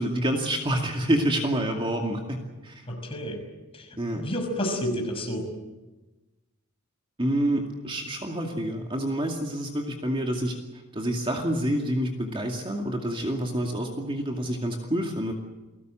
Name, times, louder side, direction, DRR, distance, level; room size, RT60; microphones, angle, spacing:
voice 1, 0.0-2.4 2.6-2.8 4.0-4.2 7.2-10.5 10.9-15.3, right 1 dB, 25° right, 2 dB, 2.3 m, -27 dB
voice 2, 2.9-3.4 3.7-5.5, equal, 25° left, 3 dB, 5.7 m, -30 dB
29.5 x 18.5 x 7.8 m, 1.1 s
head